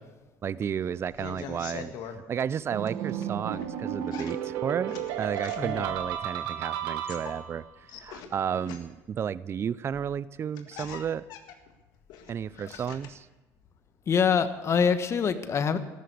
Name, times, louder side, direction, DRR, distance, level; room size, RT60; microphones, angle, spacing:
voice 1, 0.4-7.6 8.0-11.2 12.3-13.3, right 8 dB, 35° right, 19 dB, 0.4 m, -32 dB
sound 1, 1.0-2.2 2.8-3.7 4.1-5.9 6.8-9.2 10.0-10.1 10.4-13.3 13.6-14.3, left 8 dB, 70° left, 1.8 m, -44 dB
sound 2, 2.7-7.6, right 9 dB, 80° right, 1.6 m, -33 dB
voice 2, 14.1-15.8, left 6 dB, 40° left, 11 dB, 1.3 m, -25 dB
14.0 x 12.0 x 8.4 m, 1.1 s
supercardioid pair, 100°, 7 cm